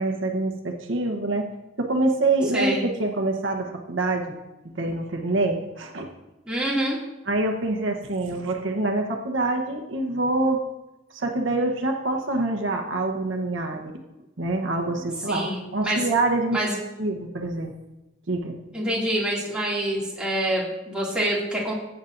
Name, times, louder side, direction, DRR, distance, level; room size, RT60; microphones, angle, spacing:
voice 1, 0.0-1.5 1.8-4.4 4.7-6.1 7.3-10.6 11.1-14.0 14.4-16.6 17.0-17.7 18.3-18.5, right 2 dB, 80° right, 3 dB, 1.0 m, -25 dB
voice 2, 2.5-2.8 6.5-7.0 15.3-16.1 16.5-16.8 18.7-21.7, right 1 dB, 5° right, -6 dB, 2.3 m, -26 dB
15.0 x 8.1 x 2.6 m, 1.0 s
head